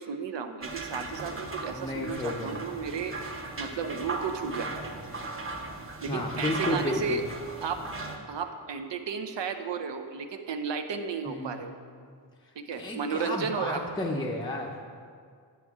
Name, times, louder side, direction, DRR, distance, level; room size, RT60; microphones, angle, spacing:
voice 1, 0.0-3.3 3.6-4.7 6.0-7.2 7.6-7.8 8.3-11.7 12.6-13.8, right 6 dB, 75° right, 7 dB, 0.7 m, -33 dB
sound 1, 0.6-8.2, right 2 dB, 30° right, 0.7 m, -37 dB
voice 2, 1.7-2.6 6.1-7.2 11.3-11.6 12.7-14.7, left 1 dB, 10° left, -2 dB, 0.5 m, -32 dB
10.5 x 7.2 x 3.6 m, 2.1 s
wide cardioid pair, 165°, 43 cm